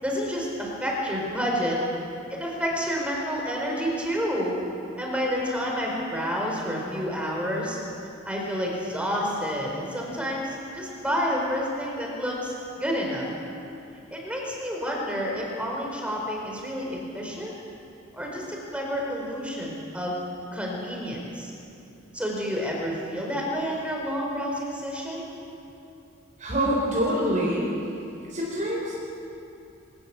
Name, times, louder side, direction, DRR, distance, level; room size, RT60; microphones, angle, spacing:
voice 1, 0.0-1.8 2.3-4.6 5.0-7.8 8.2-13.3 14.1-17.5 18.1-20.2 20.5-21.5 22.1-25.3, equal, 5° right, -2 dB, 4.5 m, -29 dB
voice 2, 26.4-27.7 28.3-29.0, equal, 35° right, -4 dB, 4.2 m, -25 dB
23.5 x 17.5 x 7.2 m, 2.8 s
head